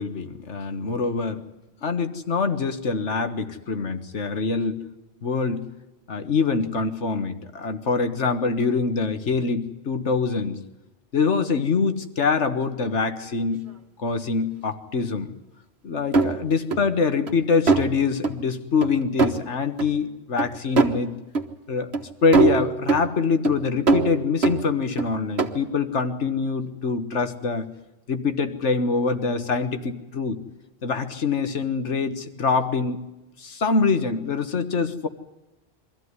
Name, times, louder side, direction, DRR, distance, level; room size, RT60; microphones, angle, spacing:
voice 1, 0.0-1.4 1.8-4.8 5.2-5.7 6.1-10.6 11.1-13.6 14.0-15.3 15.8-21.2 21.7-21.9 22.2-27.7 28.1-30.4 30.8-33.0 33.4-35.1, left 4 dB, 85° left, 8 dB, 1.8 m, -24 dB
sound 1, 16.1-16.8 17.3-17.4 17.7-17.9 18.2-18.3 18.8-18.9 19.2-19.4 19.8-19.9 20.4-20.5 20.8-21.0 21.3-21.4 21.9-22.0 22.3-23.1 23.4-23.5 23.9-25.1 25.4-25.5, right 4 dB, 65° right, 1.8 m, -21 dB
23.5 x 14.5 x 9.7 m, 1.0 s
omnidirectional pair, 1.2 m